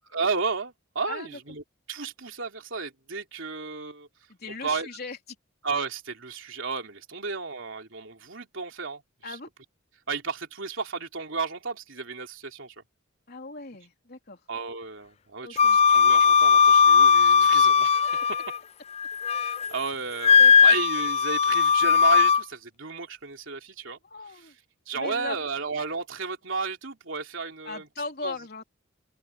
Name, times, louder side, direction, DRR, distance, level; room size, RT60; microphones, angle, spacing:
voice 1, 0.1-1.6 1.9-4.1 4.6-4.9 5.6-9.4 10.1-12.7 14.5-18.1 19.4-24.0 24.4-24.5 24.9-27.9 28.2-28.4, right 4 dB, 70° right, 3.4 m, -33 dB
voice 2, 4.4-5.2 9.2-9.5 13.3-14.4 15.4-15.8 20.4-20.7 24.0-24.5 24.9-25.4 27.6-28.6, left 3 dB, 50° left, 3.8 m, -38 dB
Wind instrument woodwind instrument, 15.6-18.6 19.0-19.7 20.2-22.4, left 6 dB, 30° left, 0.4 m, -18 dB
open air
head